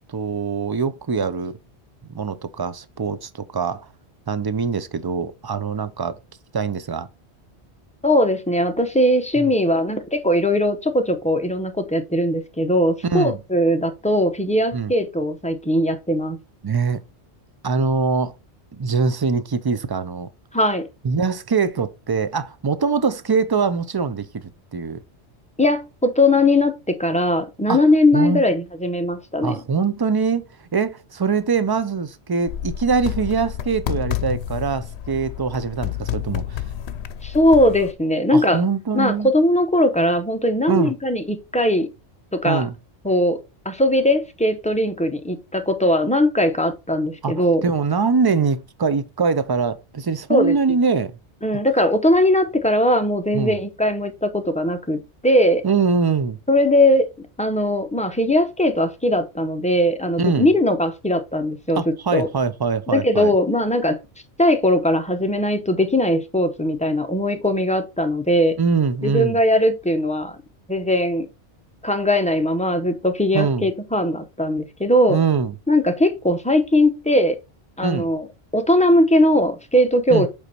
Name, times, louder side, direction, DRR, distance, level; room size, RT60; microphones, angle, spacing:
voice 1, 0.1-1.6 2.1-3.9 4.3-6.2 6.5-7.1 9.4-9.5 13.1-13.4 14.7-14.9 16.6-17.0 17.6-18.3 18.7-20.3 21.0-25.0 27.7-27.8 28.1-28.4 29.4-30.4 30.7-36.6 38.3-39.3 40.7-40.9 42.4-42.7 47.2-51.2 53.3-53.6 55.6-56.4 60.2-60.5 61.7-63.4 68.6-69.4 73.3-73.7 75.1-75.5 77.8-78.1 80.1-80.3, right 5 dB, 40° right, 0.3 m, -23 dB
voice 2, 8.0-16.4 20.5-20.8 25.6-29.5 37.2-38.6 38.9-41.9 42.3-42.6 43.0-43.4 43.6-47.6 50.3-50.5 51.4-55.6 56.5-57.1 57.4-61.8 62.1-62.3 62.9-64.0 64.4-68.6 69.0-70.4 70.7-71.3 71.8-75.2 75.7-77.4 77.8-78.3 78.5-80.3, left 1 dB, 5° left, 0.8 m, -19 dB
sound 1, 32.5-37.9, left 11 dB, 75° left, 0.9 m, -29 dB
8.1 x 3.5 x 4.2 m
omnidirectional pair, 1.1 m